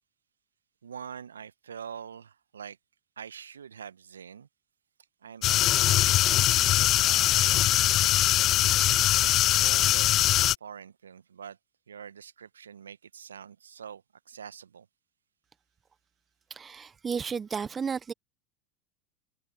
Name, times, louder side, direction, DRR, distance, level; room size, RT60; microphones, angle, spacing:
voice 1, 0.8-2.8 3.2-4.5 5.2-7.8 9.6-11.6 11.9-14.9, right 7 dB, 75° right, 1.5 m, -45 dB
sound 1, 5.4-10.5, left 14 dB, 40° left, 0.3 m, -22 dB
voice 2, 16.5-18.1, right 6 dB, 25° right, 1.1 m, -33 dB
figure-of-eight pair, 80°, 0 cm